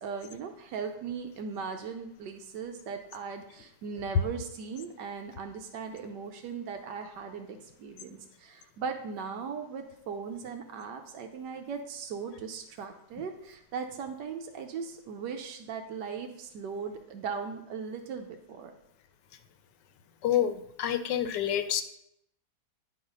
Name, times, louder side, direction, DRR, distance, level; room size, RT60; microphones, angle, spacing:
voice 1, 0.0-18.7, right 6 dB, 90° right, 4 dB, 1.4 m, -38 dB
voice 2, 20.2-21.8, left 10 dB, 85° left, 9 dB, 1.3 m, -28 dB
10.0 x 4.0 x 5.2 m, 0.78 s
omnidirectional pair, 1.8 m